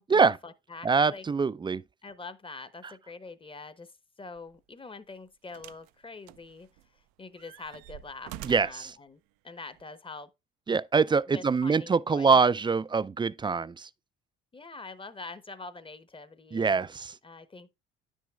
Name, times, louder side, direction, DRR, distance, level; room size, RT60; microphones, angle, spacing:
voice 1, 0.0-1.3 2.0-10.3 11.3-12.4 13.4-13.6 14.5-16.8 17.2-17.7, left 3 dB, 20° left, 0.8 m, -45 dB
voice 2, 0.8-1.8 8.4-8.9 10.7-13.9 16.5-17.1, right 5 dB, 15° right, 0.3 m, -24 dB
sound 1, 4.4-4.5 5.5-5.9 6.3-7.0 7.4-8.9 9.8-9.9, right 15 dB, 75° right, 0.4 m, -46 dB
9.9 x 6.3 x 2.3 m
hypercardioid pair, 65°, 29 cm